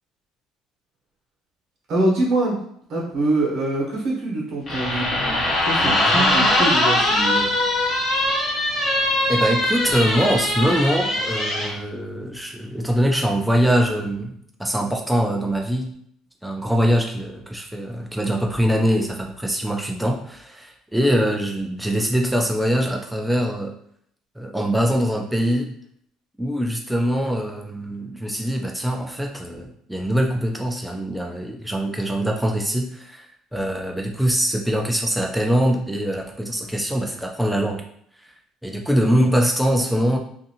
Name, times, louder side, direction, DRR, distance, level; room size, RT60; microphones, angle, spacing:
voice 1, 1.9-2.6 2.9-7.6, right 2 dB, 50° right, -4 dB, 1.0 m, -24 dB
sound 1, 4.7-11.7, left 1 dB, 35° left, 0.8 m, -21 dB
voice 2, 9.3-15.9 16.4-23.7 24.4-25.7 26.4-37.8 38.6-40.2, equal, 5° right, 1 dB, 0.4 m, -23 dB
2.6 x 2.5 x 2.7 m, 0.67 s
cardioid pair, 150°, 0 cm